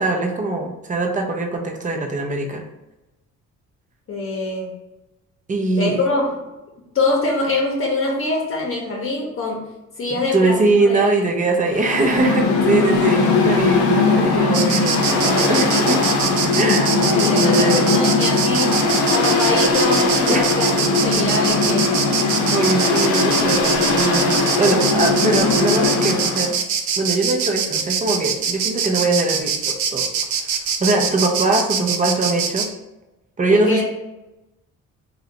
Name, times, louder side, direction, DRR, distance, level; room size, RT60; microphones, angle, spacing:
voice 1, 0.0-2.6 5.5-6.0 10.1-16.1 16.5-18.0 20.3-20.5 22.4-26.5 27.0-30.1 30.8-32.7 33.4-33.8, right 2 dB, 25° right, 2 dB, 0.6 m, -21 dB
voice 2, 4.1-4.7 5.8-6.4 6.9-9.6 10.0-10.6 10.8-11.0 12.8-13.1 17.1-18.8 19.1-21.9 33.5-33.8, left 2 dB, 45° left, -2 dB, 0.8 m, -24 dB
Mechanical fan, 11.7-26.5, left 3 dB, 75° left, 0.6 m, -19 dB
Insect, 14.5-32.7, right 7 dB, 75° right, 0.5 m, -23 dB
2.6 x 2.4 x 3.7 m, 0.99 s
cardioid pair, 90°, 30 cm